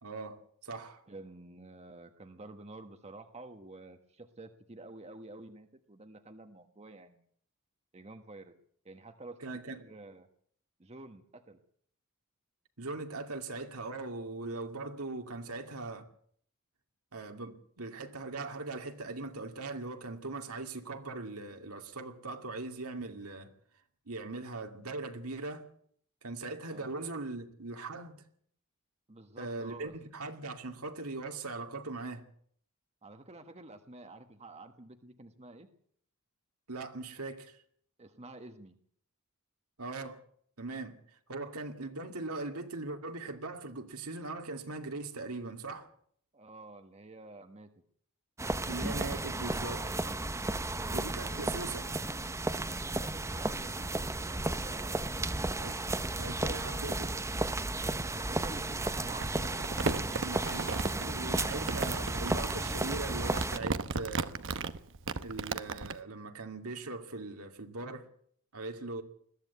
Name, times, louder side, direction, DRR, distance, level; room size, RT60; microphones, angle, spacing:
voice 1, 0.0-1.0 9.4-9.8 12.8-16.1 17.1-23.5 24.1-25.7 26.2-28.2 29.4-32.3 36.7-37.6 39.8-40.2 40.6-45.9 48.7-49.9 50.9-51.9 55.4-55.8 56.2-57.1 60.2-64.4 65.2-68.1 68.5-69.0, right 3 dB, 75° right, 2.4 m, -40 dB
voice 2, 1.1-7.2 7.9-8.6 8.8-9.4 9.7-10.3 10.8-11.6 26.7-27.0 29.1-30.0 33.0-35.7 38.0-38.7 46.3-47.7 53.0-55.5 58.0-59.6, right 2 dB, 30° right, 1.3 m, -49 dB
sound 1, 48.4-63.6, right 2 dB, 15° right, 0.8 m, -34 dB
Crumpling crinkling, 59.2-66.0, right 4 dB, 60° right, 1.0 m, -36 dB
21.5 x 14.5 x 8.3 m
head